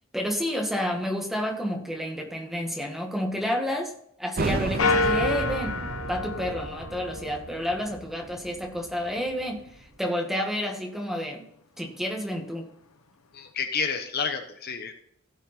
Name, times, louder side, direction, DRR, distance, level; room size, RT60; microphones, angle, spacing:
voice 1, 0.1-3.9 4.2-5.8 6.1-11.5 11.8-12.7, equal, ahead, 1 dB, 1.5 m, -30 dB
sound 1, 4.4-9.7, right 3 dB, 45° right, 0.7 m, -33 dB
sound 2, 4.8-7.5, left 3 dB, 85° left, 0.9 m, -28 dB
voice 2, 13.3-14.9, left 5 dB, 45° left, 7 dB, 0.9 m, -30 dB
16.0 x 5.4 x 4.1 m, 0.71 s
head